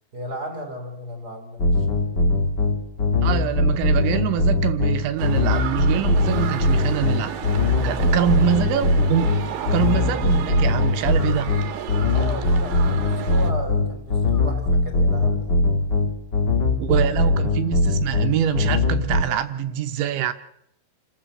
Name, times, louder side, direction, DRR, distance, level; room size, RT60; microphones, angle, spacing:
voice 1, 0.1-1.9 7.9-8.3 12.1-15.5, equal, 25° right, 6 dB, 2.6 m, -35 dB
sound 1, 1.6-19.2, left 2 dB, 40° left, 1.5 m, -21 dB
voice 2, 3.2-7.4 7.8-11.5 16.8-20.3, right 11 dB, 75° right, 7 dB, 3.2 m, -25 dB
sound 2, 5.2-13.5, right 9 dB, 60° right, 2.7 m, -33 dB
28.5 x 13.0 x 7.8 m, 0.77 s
omnidirectional pair, 5.5 m